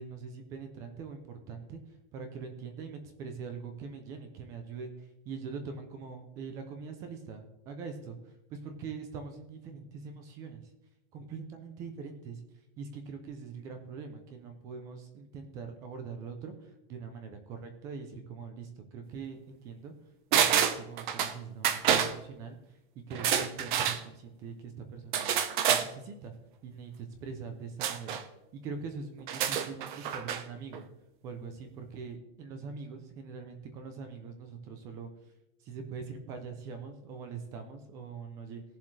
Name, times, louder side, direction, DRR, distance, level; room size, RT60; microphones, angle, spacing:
voice 1, 0.0-1.8 2.1-10.7 11.1-12.4 12.8-19.9 20.3-22.6 23.1-25.4 25.7-26.3 26.6-28.2 28.5-30.9 31.2-35.1 35.6-38.6, right 5 dB, 10° right, 7 dB, 0.3 m, -43 dB
sound 1, 20.3-21.3 21.6-22.1 23.1-24.0 25.1-25.9 27.8-28.2 29.2-30.4 30.7-30.8, right 9 dB, 50° right, 1.0 m, -28 dB
18.5 x 7.2 x 3.2 m, 0.92 s
supercardioid pair, 175°, 32 cm